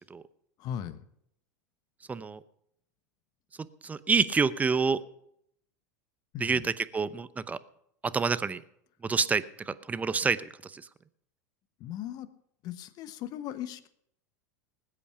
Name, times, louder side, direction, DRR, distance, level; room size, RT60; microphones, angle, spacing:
voice 1, 0.6-1.0 6.3-6.7 11.8-12.3 12.6-13.9, left 10 dB, 45° left, 13 dB, 1.1 m, -38 dB
voice 2, 2.1-2.4 3.8-5.0 6.4-7.6 8.1-8.6 9.0-10.4 10.6-10.8, right 5 dB, 15° right, 15 dB, 0.7 m, -27 dB
20.0 x 8.5 x 5.8 m, 0.72 s
hypercardioid pair, 95°, 10 cm